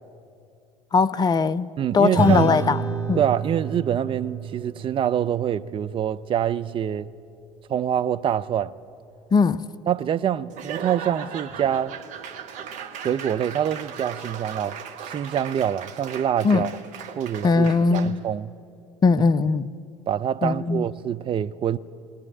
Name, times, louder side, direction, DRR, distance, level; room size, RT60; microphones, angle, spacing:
voice 1, 0.9-2.8 3.1-3.2 9.3-9.7 16.4-16.6 17.4-18.2 19.0-19.7 20.4-20.9, left 4 dB, 25° left, 0.7 m, -20 dB
voice 2, 1.8-2.6 3.2-7.1 7.7-8.7 9.9-11.9 13.0-16.7 17.2-18.5 20.1-21.8, right 9 dB, 30° right, 0.6 m, -25 dB
Acoustic guitar / Strum, 2.2-6.9, right 5 dB, 10° right, 6.9 m, -30 dB
Laughter / Applause / Crowd, 10.5-18.3, right 7 dB, 45° right, 1.6 m, -37 dB
21.0 x 19.0 x 9.0 m
figure-of-eight pair, 65°, 17 cm